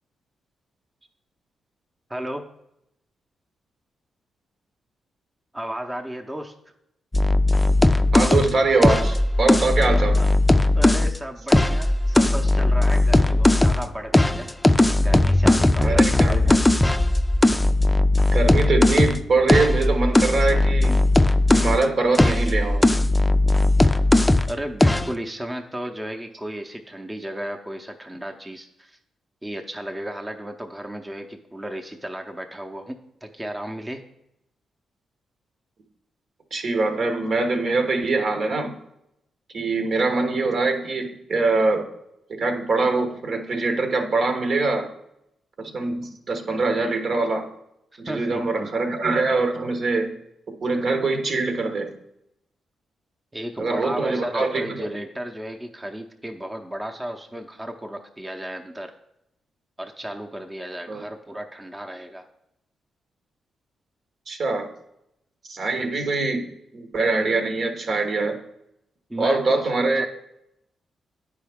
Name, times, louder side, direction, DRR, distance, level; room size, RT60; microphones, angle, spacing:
voice 1, 2.1-2.5 5.5-6.5 10.2-10.3 10.7-14.5 15.0-16.7 24.5-29.0 29.4-34.0 47.9-48.7 53.3-58.9 59.8-62.3 69.1-70.1, right 1 dB, 15° right, 3 dB, 0.7 m, -34 dB
sound 1, 7.1-11.1 11.5-13.9 14.1-21.8 22.1-24.5 24.8-25.1, left 2 dB, 15° left, 0.4 m, -18 dB
voice 2, 8.1-10.2 15.8-16.5 18.3-21.0 21.5-22.8 36.5-38.7 39.5-41.9 42.3-44.9 45.6-47.5 48.0-50.1 50.6-51.9 53.6-54.8 60.9-61.0 64.3-64.7 65.5-66.5 66.7-68.4 69.2-70.1, right 3 dB, 65° right, 4 dB, 1.1 m, -23 dB
9.0 x 4.8 x 3.5 m, 0.82 s
supercardioid pair, 50°, 0 cm